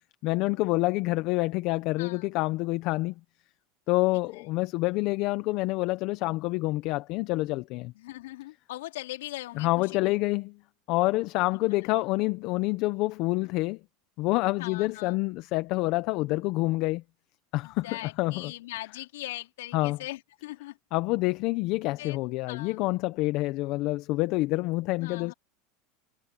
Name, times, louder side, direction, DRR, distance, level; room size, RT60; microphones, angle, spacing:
voice 1, 0.2-3.1 3.9-7.9 9.6-10.5 10.9-13.8 14.2-17.0 17.5-18.5 19.7-20.0 20.9-25.3, left 21 dB, 60° left, 1.1 m, -27 dB
voice 2, 2.0-2.3 4.3-4.4 7.9-10.1 14.6-15.2 17.6-20.8 22.0-22.2 22.5-22.8 25.0-25.3, left 17 dB, 80° left, 4.3 m, -40 dB
hypercardioid pair, 100°, 0 cm